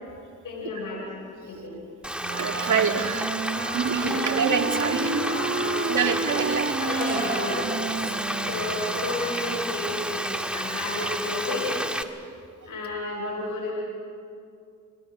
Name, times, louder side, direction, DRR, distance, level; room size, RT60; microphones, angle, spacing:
voice 1, 0.4-1.2 1.4-1.8 4.0-4.3 4.8-6.1 6.8-7.7 8.5-11.7 12.6-13.7, left 2 dB, 75° left, -1 dB, 5.5 m, -32 dB
Frying (food), 2.0-12.0, equal, 5° right, 1.6 m, -31 dB
Wind instrument woodwind instrument, 2.2-9.6, right 4 dB, 40° right, 1.8 m, -32 dB
voice 2, 2.3-5.0 5.9-6.8 8.3-8.4, right 6 dB, 65° right, 4 dB, 2.3 m, -26 dB
sound 1, 7.0-8.7, right 3 dB, 25° right, 4.1 m, -35 dB
29.5 x 21.5 x 6.1 m, 2.5 s
supercardioid pair, 50°, 32 cm